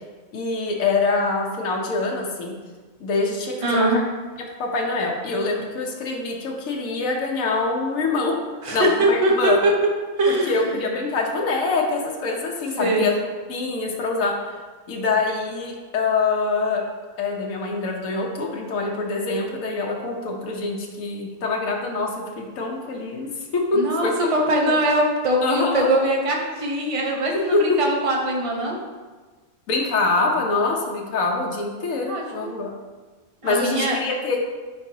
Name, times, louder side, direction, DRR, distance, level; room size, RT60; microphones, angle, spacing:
voice 1, 0.3-2.5 3.0-3.9 4.6-8.3 8.7-9.6 10.3-13.1 13.5-14.3 14.9-16.8 17.2-24.1 24.6-24.8 25.4-25.9 27.5-27.6 29.7-32.7 33.4-34.4, left 3 dB, 75° left, 0 dB, 1.3 m, -24 dB
voice 2, 3.6-4.0 8.6-9.7 10.2-10.8 12.8-13.2 23.7-28.8 32.1-32.5 33.4-34.0, right 1 dB, 30° right, -1 dB, 0.9 m, -22 dB
9.9 x 4.1 x 2.8 m, 1.3 s
omnidirectional pair, 1.4 m